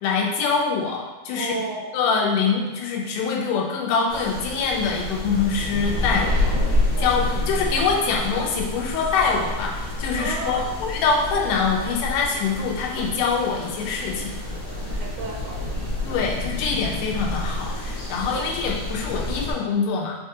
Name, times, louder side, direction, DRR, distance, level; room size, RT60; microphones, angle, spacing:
voice 1, 0.0-1.5 1.9-6.5 7.0-14.3 16.1-20.2, left 5 dB, 85° left, -1 dB, 2.1 m, -24 dB
voice 2, 1.4-1.9 6.9-7.2 10.2-10.7 14.6-16.0 17.0-17.1 18.3-18.5, right 3 dB, 80° right, -1 dB, 1.8 m, -34 dB
sound 1, 4.1-19.5, left 1 dB, 55° left, 1.0 m, -28 dB
5.5 x 2.3 x 2.8 m, 1.2 s
omnidirectional pair, 3.7 m